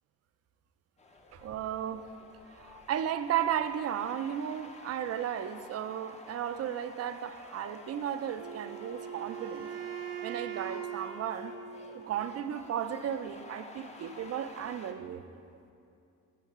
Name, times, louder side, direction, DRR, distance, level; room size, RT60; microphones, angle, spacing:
sound 1, 1.0-14.9, left 2 dB, 20° left, 0.6 m, -51 dB
voice 1, 1.3-2.0 2.5-9.7 10.2-11.5 11.9-15.4, right 9 dB, 50° right, 10 dB, 0.4 m, -34 dB
Wind instrument woodwind instrument, 8.4-12.4, right 9 dB, 85° right, 0.7 m, -41 dB
10.5 x 5.3 x 3.6 m, 2.6 s
cardioid pair, 115°, 32 cm